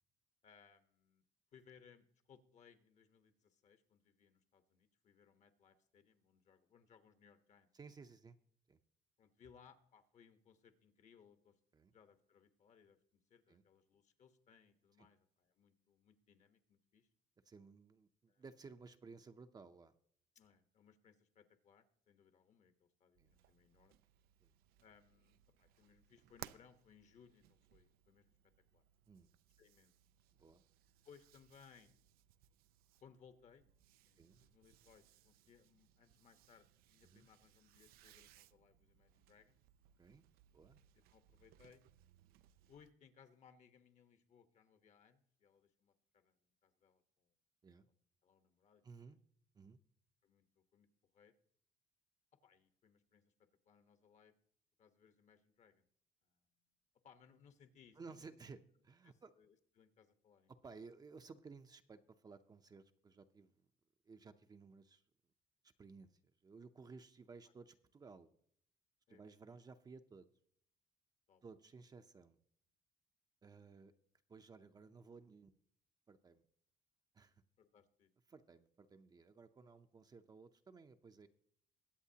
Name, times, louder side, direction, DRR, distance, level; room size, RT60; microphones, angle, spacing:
voice 1, 0.4-1.2 1.5-7.7 9.2-11.6 11.9-17.1 18.3-18.4 20.3-24.0 24.8-28.3 28.7-28.8 29.6-29.9 31.0-31.9 33.0-33.6 34.0-39.6 40.9-41.8 42.7-47.3 48.2-49.1 50.2-50.9 51.1-51.3 52.4-54.3 54.8-55.8 56.2-56.4 57.0-58.3 59.0-60.5 69.1-69.6 71.3-71.4 73.7-73.8 77.6-78.1, left 7 dB, 50° left, 9 dB, 1.1 m, -67 dB
voice 2, 7.7-8.4 8.7-8.8 11.7-11.9 13.5-13.6 15.0-15.1 17.5-19.9 23.2-23.3 24.4-24.5 29.1-29.3 30.4-30.6 34.2-34.4 37.0-37.3 40.0-40.2 40.5-40.8 47.6-47.9 48.8-49.2 49.5-49.8 58.0-59.3 60.5-63.7 64.1-65.0 65.8-68.3 69.1-70.3 71.4-72.4 73.4-73.9 74.3-75.5 76.1-76.4 77.1-77.4 78.3-81.3, right 4 dB, 25° right, 8 dB, 0.6 m, -57 dB
sound 1, 23.1-42.9, right 14 dB, 85° right, 0.4 m, -64 dB
21.5 x 8.0 x 2.8 m, 0.64 s
cardioid pair, 115°, 15 cm